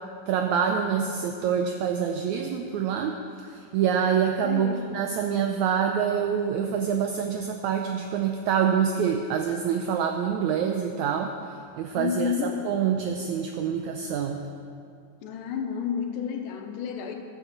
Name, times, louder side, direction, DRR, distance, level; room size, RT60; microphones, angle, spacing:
voice 1, 0.3-11.4 11.8-14.4, right 7 dB, 75° right, 4 dB, 1.8 m, -26 dB
voice 2, 4.4-4.9 12.0-12.6 15.2-17.2, left 7 dB, 85° left, 4 dB, 2.6 m, -30 dB
12.0 x 9.5 x 7.1 m, 2.3 s
omnidirectional pair, 3.8 m